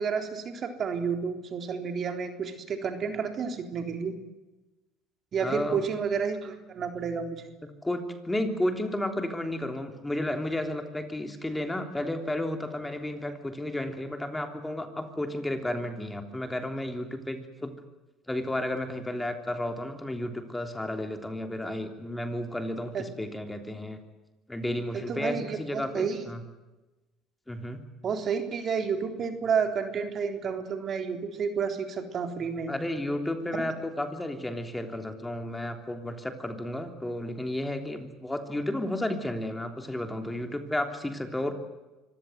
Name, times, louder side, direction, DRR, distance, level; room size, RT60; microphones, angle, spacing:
voice 1, 0.0-4.2 5.3-7.5 22.9-23.1 24.9-26.3 28.0-32.7 33.5-33.7, right 6 dB, 45° right, 6 dB, 3.8 m, -30 dB
voice 2, 5.4-5.8 7.8-17.7 18.3-24.0 24.5-26.4 27.5-27.8 32.7-41.5, left 1 dB, 10° left, 6 dB, 3.3 m, -32 dB
25.0 x 17.0 x 9.5 m, 1.1 s
supercardioid pair, 90°, 0 cm